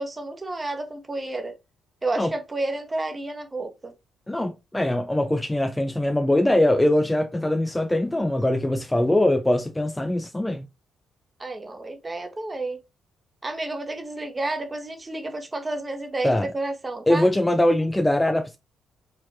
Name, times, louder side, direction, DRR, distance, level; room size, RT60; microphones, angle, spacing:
voice 1, 0.0-1.5 2.0-3.9 11.4-12.8 13.4-17.3, right 2 dB, 25° right, 1.2 m, -30 dB
voice 2, 4.3-10.7 16.2-16.5 17.1-18.6, left 1 dB, 10° left, 0.5 m, -22 dB
4.8 x 4.2 x 2.7 m
figure-of-eight pair, 40°, 0 cm